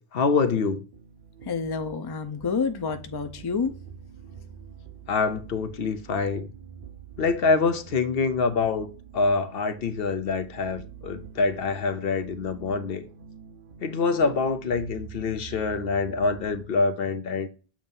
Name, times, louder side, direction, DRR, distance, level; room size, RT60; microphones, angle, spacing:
voice 1, 0.1-0.9 5.1-6.5 7.2-8.9 9.1-13.1 13.8-17.5, left 4 dB, 65° left, 0.9 m, -25 dB
sound 1, 0.9-16.7, right 8 dB, 60° right, 0.9 m, -46 dB
voice 2, 1.4-3.8, left 5 dB, 30° left, 0.5 m, -28 dB
7.4 x 2.6 x 5.4 m
omnidirectional pair, 1.1 m